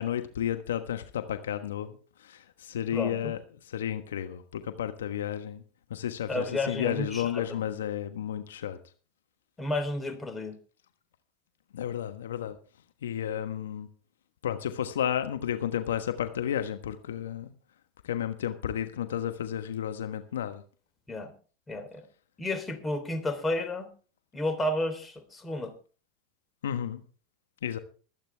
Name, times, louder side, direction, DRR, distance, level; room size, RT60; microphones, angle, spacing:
voice 1, 0.0-5.6 5.9-8.8 11.7-12.6 13.0-13.9 14.4-17.5 18.0-20.6 26.6-27.0 27.6-27.8, left 10 dB, 85° left, 9 dB, 1.3 m, -32 dB
voice 2, 2.9-3.3 6.3-7.6 9.6-10.5 21.1-21.3 21.7-22.0 22.4-23.9 24.3-25.7, left 1 dB, 15° left, 7 dB, 3.4 m, -32 dB
23.0 x 9.0 x 3.4 m, 0.37 s
hypercardioid pair, 100°, 0 cm